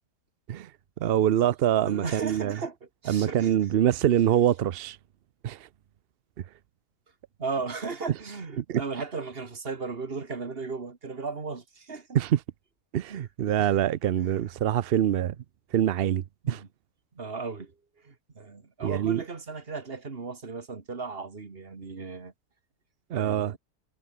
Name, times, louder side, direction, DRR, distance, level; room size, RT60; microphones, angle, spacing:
voice 1, 1.0-2.6 3.1-5.0 5.4-5.6 8.6-8.8 12.1-12.4 12.9-15.3 15.7-16.6 18.8-19.2 23.1-23.6, right 11 dB, 85° right, 0.5 m, -25 dB
voice 2, 1.8-3.5 7.4-12.1 13.1-13.2 13.6-13.7 14.2-14.4 16.4-16.7 17.2-17.7 18.0-22.3 23.1-23.6, right 4 dB, 35° right, 2.1 m, -36 dB
omnidirectional pair, 1.8 m